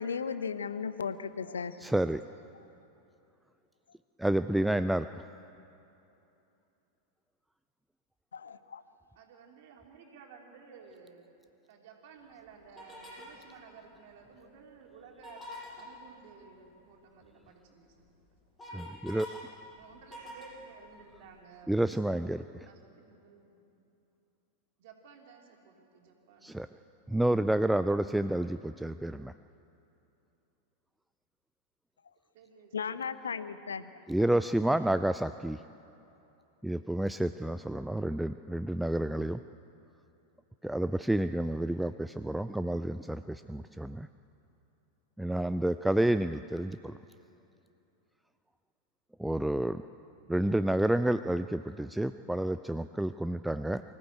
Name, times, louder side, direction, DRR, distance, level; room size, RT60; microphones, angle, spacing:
voice 1, 0.0-1.8 8.3-8.8 32.7-33.8, left 6 dB, 70° left, 13 dB, 0.8 m, -35 dB
voice 2, 1.8-2.2 4.2-5.1 18.7-19.4 21.7-22.7 26.4-26.7 27.1-29.3 34.1-35.6 36.6-39.4 40.6-44.1 45.2-47.0 49.2-49.8 50.3-53.8, right 1 dB, 5° right, 12 dB, 0.4 m, -29 dB
voice 3, 9.1-11.3 11.7-17.9 19.7-22.4 22.7-23.7 24.8-26.8 32.3-33.1, right 5 dB, 50° right, 1 dB, 3.1 m, -55 dB
sound 1, 12.8-13.4 15.1-15.9 17.5-17.6 18.0-19.4 19.7-21.3, left 2 dB, 15° left, 6.6 m, -46 dB
24.0 x 15.0 x 8.1 m, 2.8 s
figure-of-eight pair, 90°, 0 cm